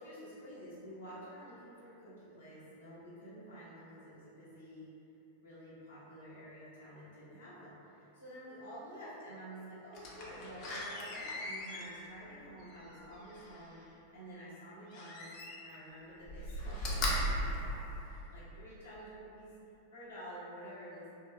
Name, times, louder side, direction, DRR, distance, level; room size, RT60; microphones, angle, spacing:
voice 1, 0.0-4.9 5.4-19.5 19.9-21.1, equal, 70° left, -10 dB, 1.0 m, -50 dB
Slam, 9.9-13.8 14.9-15.8 16.2-18.5 19.0-19.1, equal, 40° left, 0.5 m, -38 dB
2.8 x 2.6 x 2.2 m, 2.8 s
figure-of-eight pair, 90°, 0 cm